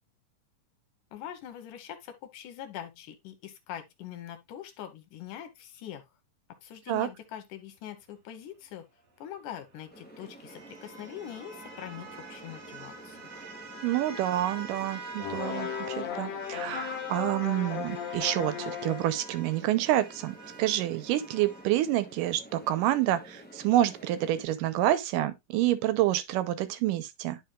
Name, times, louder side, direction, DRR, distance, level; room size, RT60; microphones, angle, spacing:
voice 1, 1.1-6.1 6.6-8.9 9.2-13.2, left 10 dB, 80° left, 2.5 m, -43 dB
sound 1, 9.4-16.0 16.4-21.7, right 3 dB, 40° right, 1.3 m, -46 dB
sound 2, 9.9-24.5, right 1 dB, 10° left, 0.4 m, -50 dB
voice 2, 13.8-27.4, right 13 dB, 90° right, 2.3 m, -28 dB
sound 3, 15.2-19.2, left 8 dB, 60° left, 2.3 m, -36 dB
10.5 x 5.0 x 2.3 m
omnidirectional pair, 3.7 m